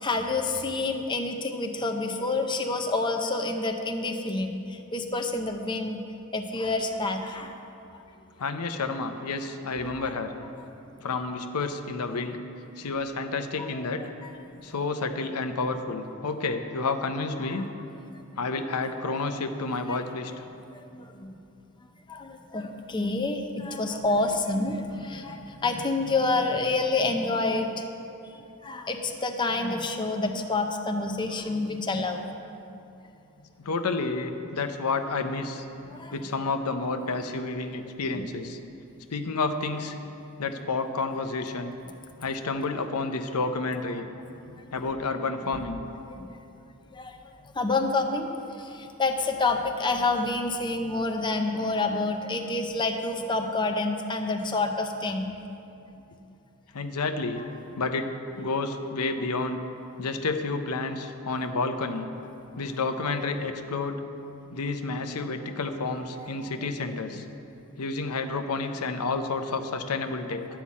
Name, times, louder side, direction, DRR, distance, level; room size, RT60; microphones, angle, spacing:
voice 1, 0.0-6.0 6.3-7.5 13.7-13.8 17.4-17.6 19.9-20.0 20.9-21.3 22.1-27.9 28.6-32.3 35.8-36.1 38.1-38.2 44.6-44.7 46.1-46.3 46.9-47.2 47.5-48.3 48.6-55.4 66.3-66.5, left 3 dB, 20° left, 4 dB, 0.6 m, -28 dB
voice 2, 8.4-10.3 11.0-12.4 12.8-14.0 14.6-17.7 18.4-20.3 33.6-35.7 36.1-38.6 39.1-40.0 40.4-41.7 42.2-44.1 44.7-45.8 56.7-57.4 57.8-58.1 58.4-59.6 60.0-62.1 62.6-64.0 64.5-67.2 67.8-70.4, left 3 dB, 90° left, 7 dB, 0.7 m, -30 dB
12.0 x 5.7 x 8.4 m, 2.8 s
head